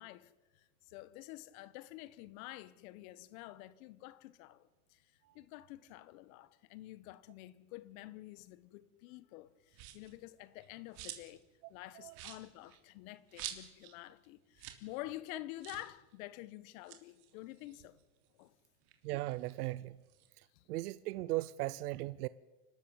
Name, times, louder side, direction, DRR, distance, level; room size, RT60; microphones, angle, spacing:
voice 1, 0.0-5.0 5.3-11.4 11.7-18.0 18.4-18.5 20.5-20.6, left 16 dB, 65° left, 1.5 m, -49 dB
sound 1, 9.7-10.2 10.6-11.4 11.7-11.8 12.1-14.0 14.2-14.3 14.5-14.9 15.1-15.2 15.6-15.9 16.7-18.4 18.8-20.3, right 12 dB, 55° right, 3.4 m, -49 dB
voice 2, 19.0-20.0 20.4-22.3, right 18 dB, 80° right, 0.8 m, -38 dB
29.0 x 13.0 x 9.1 m
supercardioid pair, 135°, 45 cm